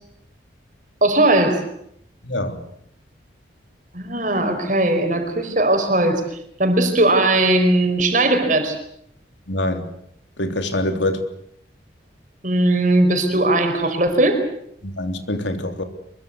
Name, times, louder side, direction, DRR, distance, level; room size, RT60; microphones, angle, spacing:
voice 1, 1.0-1.6 3.9-6.2 6.6-8.7 12.4-14.4, right 2 dB, 45° right, 6 dB, 4.8 m, -18 dB
voice 2, 2.2-2.6 9.5-9.8 10.4-11.2 14.8-15.8, left 1 dB, 75° left, 7 dB, 3.3 m, -24 dB
24.0 x 23.0 x 8.0 m, 0.70 s
head